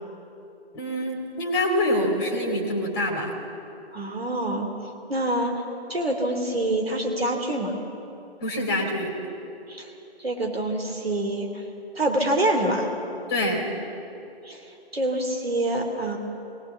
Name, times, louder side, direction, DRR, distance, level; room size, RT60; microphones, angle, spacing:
voice 1, 0.7-3.3 8.4-9.1 13.3-13.7, left 1 dB, 15° left, -1 dB, 2.2 m, -25 dB
voice 2, 3.9-4.7 5.1-5.6 5.9-7.7 9.7-9.9 10.2-11.6 11.9-12.9 13.4-13.6 14.4-14.6 14.9-16.2, right 1 dB, 65° right, 2 dB, 3.0 m, -26 dB
22.5 x 18.0 x 7.2 m, 2.9 s
figure-of-eight pair, 145°, 32 cm